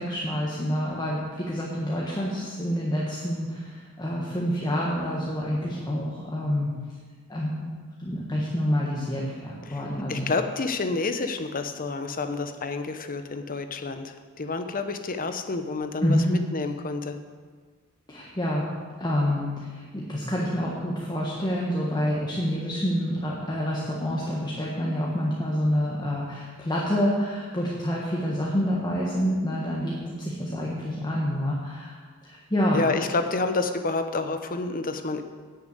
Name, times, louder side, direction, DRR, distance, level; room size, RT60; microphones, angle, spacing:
voice 1, 0.0-6.7 7.3-7.7 8.0-10.3 16.0-16.3 18.1-18.6 19.0-32.0 32.2-32.8, equal, 20° left, -4 dB, 1.4 m, -27 dB
voice 2, 10.1-17.2 32.7-35.2, left 3 dB, 40° left, 8 dB, 0.8 m, -29 dB
10.5 x 6.9 x 8.2 m, 1.6 s
head